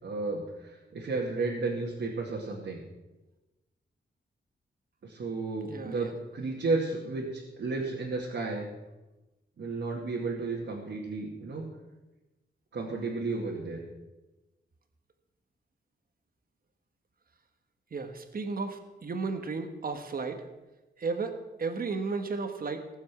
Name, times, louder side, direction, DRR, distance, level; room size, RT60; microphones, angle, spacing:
voice 1, 0.0-2.8 5.0-8.7 9.6-11.6 12.7-13.8, right 3 dB, 65° right, -3 dB, 2.2 m, -33 dB
voice 2, 5.7-6.1 17.9-20.4 21.0-22.9, right 4 dB, 45° right, 7 dB, 1.4 m, -34 dB
18.0 x 7.4 x 6.0 m, 1.1 s
wide cardioid pair, 155°, 20 cm